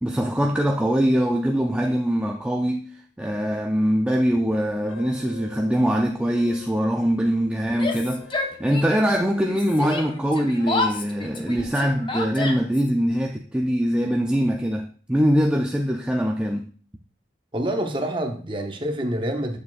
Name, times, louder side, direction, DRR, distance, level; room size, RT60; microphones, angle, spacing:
voice 1, 0.0-16.7, equal, 5° right, 0.3 m, -23 dB
sound 1, 4.5-10.0, left 2 dB, 85° left, 0.8 m, -47 dB
Yell, 7.7-9.2 9.4-12.9, left 3 dB, 25° left, 0.7 m, -30 dB
voice 2, 17.5-19.6, right 1 dB, 25° right, 0.8 m, -27 dB
8.4 x 6.8 x 2.4 m
head